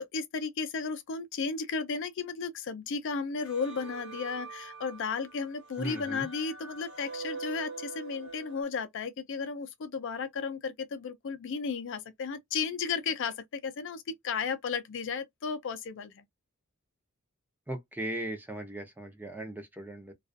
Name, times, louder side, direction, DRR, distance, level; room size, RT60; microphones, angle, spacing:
voice 1, 0.0-16.2, left 5 dB, 60° left, 0.4 m, -34 dB
sound 1, 3.4-8.6, right 4 dB, 60° right, 1.1 m, -43 dB
voice 2, 5.8-6.3 17.7-20.1, right 1 dB, 10° right, 0.5 m, -38 dB
2.3 x 2.3 x 2.4 m
head